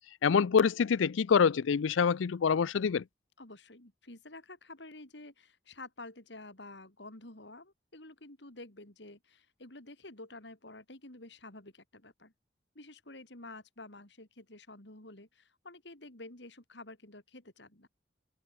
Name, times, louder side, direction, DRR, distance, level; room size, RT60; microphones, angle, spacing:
voice 1, 0.2-3.0, left 6 dB, 85° left, 0.4 m, -26 dB
voice 2, 3.4-12.3 12.8-17.9, left 2 dB, 65° left, 3.8 m, -50 dB
head